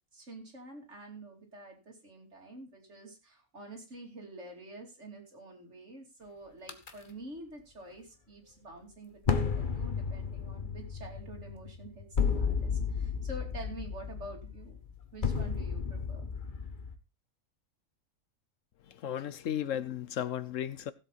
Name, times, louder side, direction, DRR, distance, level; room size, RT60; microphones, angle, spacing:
voice 1, 0.1-14.8 15.1-16.3, right 2 dB, 60° right, 3.3 m, -47 dB
sound 1, 6.7-6.9 9.2-16.9, left 6 dB, 40° left, 1.3 m, -33 dB
voice 2, 18.9-20.9, left 10 dB, 75° left, 1.1 m, -35 dB
16.0 x 7.8 x 4.1 m
omnidirectional pair, 1.4 m